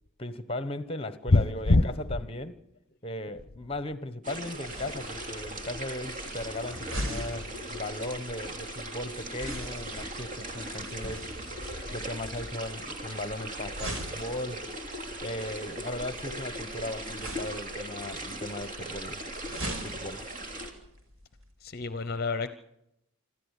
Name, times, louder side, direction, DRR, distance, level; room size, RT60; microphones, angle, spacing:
voice 1, 0.2-2.6 3.0-11.3 11.9-14.7 15.2-19.2 19.6-20.2, left 1 dB, 25° left, 1.1 m, -37 dB
voice 2, 1.3-1.9 21.6-22.5, left 2 dB, 45° left, 0.8 m, -24 dB
sound 1, 4.2-20.7, right 1 dB, 35° right, 3.0 m, -39 dB
sound 2, 4.7-21.5, right 1 dB, 65° right, 5.7 m, -43 dB
26.5 x 14.0 x 8.2 m
head